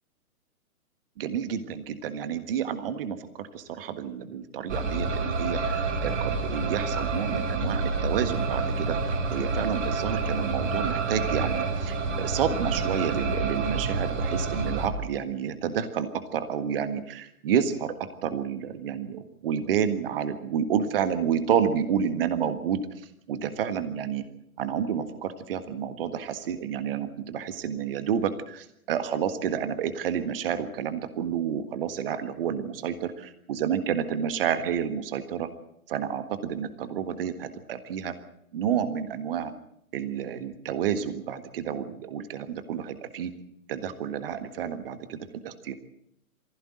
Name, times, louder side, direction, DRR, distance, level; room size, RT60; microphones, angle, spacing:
voice 1, 1.2-22.8 23.3-24.2 24.6-35.5 35.9-38.1 38.5-39.5 39.9-43.3 43.7-45.7, right 8 dB, 40° right, 11 dB, 1.7 m, -30 dB
sound 1, 4.7-14.9, right 4 dB, 55° right, 3.9 m, -28 dB
23.0 x 16.0 x 7.7 m, 0.77 s
figure-of-eight pair, 125°, 43 cm